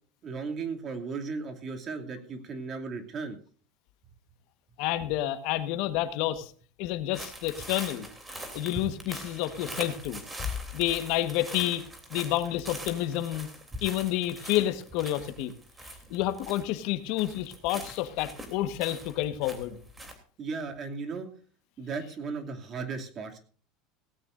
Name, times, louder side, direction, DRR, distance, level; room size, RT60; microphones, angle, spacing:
voice 1, 0.2-3.4 20.4-21.3 21.8-23.4, right 4 dB, 30° right, 4 dB, 2.6 m, -36 dB
voice 2, 4.8-6.5 6.8-8.1 8.5-10.2 10.7-11.8 12.1-13.5 13.8-15.5 16.1-19.8, left 13 dB, 55° left, 10 dB, 1.4 m, -29 dB
sound 1, 7.1-16.9 17.2-20.1, right 1 dB, 10° right, 3.2 m, -43 dB
sound 2, 10.4-11.8, left 8 dB, 20° left, 1.2 m, -38 dB
18.0 x 16.5 x 2.6 m, 0.43 s
cardioid pair, 160°, 0 cm